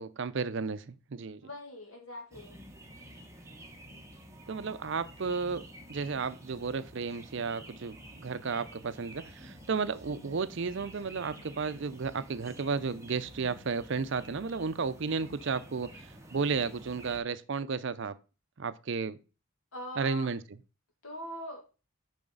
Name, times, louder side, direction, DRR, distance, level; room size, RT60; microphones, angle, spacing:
voice 1, 0.0-1.4 4.5-18.2 18.6-19.2 20.0-20.4, right 5 dB, 60° right, 0.5 m, -33 dB
voice 2, 1.4-2.6 19.7-20.3 21.0-21.6, left 1 dB, 80° left, 2.3 m, -42 dB
sound 1, 2.3-17.2, right 1 dB, 15° right, 1.1 m, -50 dB
7.2 x 5.7 x 3.9 m
head